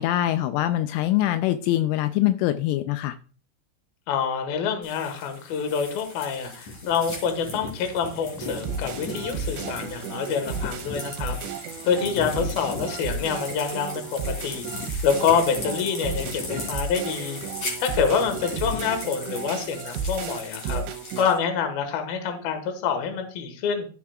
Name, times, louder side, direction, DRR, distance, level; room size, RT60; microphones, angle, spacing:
voice 1, 0.0-3.1, left 13 dB, 85° left, 3.1 m, -23 dB
voice 2, 4.1-11.4 11.9-14.6 15.0-17.4 17.8-20.8 21.2-23.9, left 6 dB, 65° left, 2.7 m, -26 dB
sound 1, 4.8-21.4, left 3 dB, 40° left, 3.9 m, -37 dB
sound 2, 8.4-21.3, right 5 dB, 80° right, 2.7 m, -34 dB
12.0 x 8.3 x 2.3 m
omnidirectional pair, 5.7 m